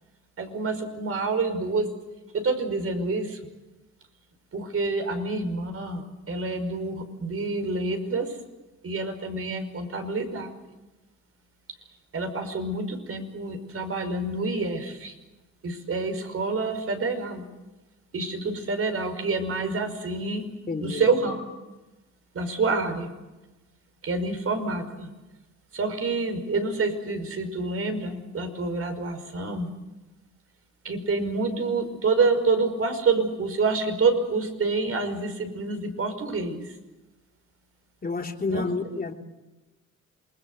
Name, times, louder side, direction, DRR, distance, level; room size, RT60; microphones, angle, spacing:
voice 1, 0.4-1.9 2.3-3.4 4.5-8.4 8.8-10.5 12.1-15.1 15.6-17.5 18.1-20.5 20.8-21.4 22.3-23.1 24.0-25.1 25.7-29.7 30.8-36.8 38.5-39.0, right 3 dB, 50° right, 7 dB, 5.6 m, -27 dB
voice 2, 20.7-21.0 38.0-39.1, left 4 dB, 30° left, 3 dB, 3.1 m, -29 dB
27.5 x 21.5 x 8.0 m, 1.1 s
cardioid pair, 90°, 30 cm